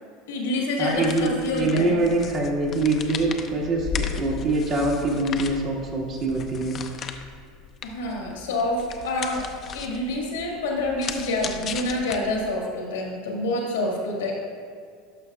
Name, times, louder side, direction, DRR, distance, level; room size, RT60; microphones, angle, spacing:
voice 1, 0.3-2.0 7.8-9.4 9.7-14.3, left 2 dB, 85° left, -1 dB, 1.6 m, -27 dB
sound 1, 0.8-12.6, left 6 dB, 40° left, 0.6 m, -36 dB
voice 2, 0.8-6.8, right 2 dB, 50° right, -2 dB, 1.9 m, -24 dB
11.5 x 5.6 x 2.4 m, 2.1 s
hypercardioid pair, 90°, 0 cm